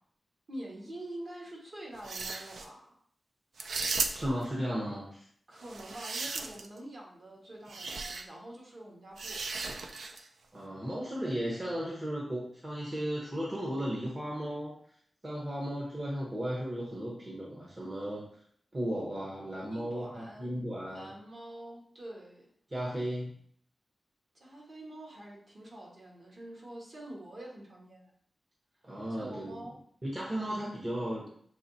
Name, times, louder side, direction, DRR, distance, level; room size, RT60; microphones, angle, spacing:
voice 1, 0.5-2.9 5.5-9.4 19.7-20.6 20.9-22.5 24.3-28.1 29.2-29.7, right 1 dB, 50° right, -3 dB, 1.4 m, -46 dB
sound 1, 1.9-2.7 3.6-4.4 5.6-6.8 7.7-8.2 9.2-10.3, right 3 dB, 90° right, 0.4 m, -36 dB
voice 2, 4.1-5.3 10.5-14.7 15.2-18.3 18.7-21.1 22.7-23.3 28.8-29.6 30.0-31.3, equal, 30° right, -4 dB, 0.9 m, -35 dB
6.4 x 3.0 x 2.7 m, 0.62 s
wide cardioid pair, 145°, 0 cm